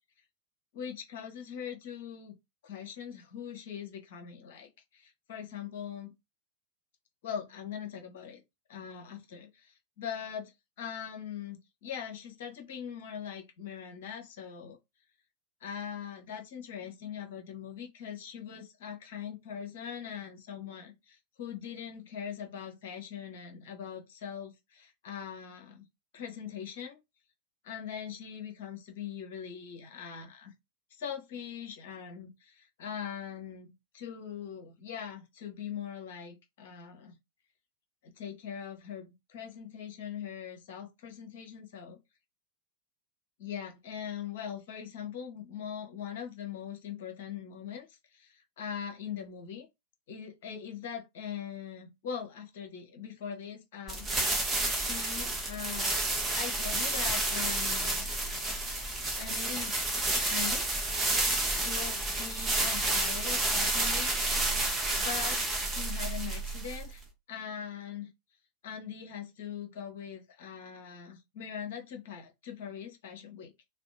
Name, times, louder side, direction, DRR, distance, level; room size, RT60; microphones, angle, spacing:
voice 1, 0.7-2.4 2.6-6.1 7.2-8.4 8.7-14.8 15.6-25.9 26.1-27.0 27.6-30.5 30.9-37.2 38.0-42.0 43.4-49.7 50.1-54.1 54.7-56.0 56.3-58.0 59.1-59.9 60.3-60.7 61.6-64.1 65.0-68.1 68.6-73.5, left 8 dB, 55° left, 0.7 m, -41 dB
sound 1, 53.9-67.0, right 2 dB, 15° right, 0.7 m, -30 dB
2.6 x 2.0 x 2.6 m
figure-of-eight pair, 90°, 0 cm